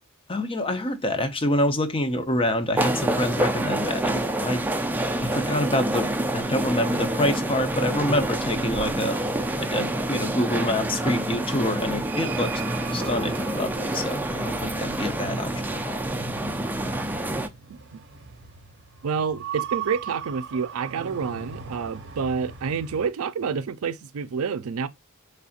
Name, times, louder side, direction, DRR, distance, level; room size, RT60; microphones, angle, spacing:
voice 1, 0.3-4.6 5.2-9.2 9.6-12.5 12.9-16.0, left 1 dB, 25° left, 0.7 m, -26 dB
sound 1, 2.8-17.5, right 1 dB, 10° right, 0.4 m, -27 dB
sound 2, 11.9-23.1, right 6 dB, 55° right, 0.7 m, -41 dB
voice 2, 17.7-18.0 19.0-24.9, right 6 dB, 90° right, 0.5 m, -28 dB
4.1 x 3.3 x 2.4 m
head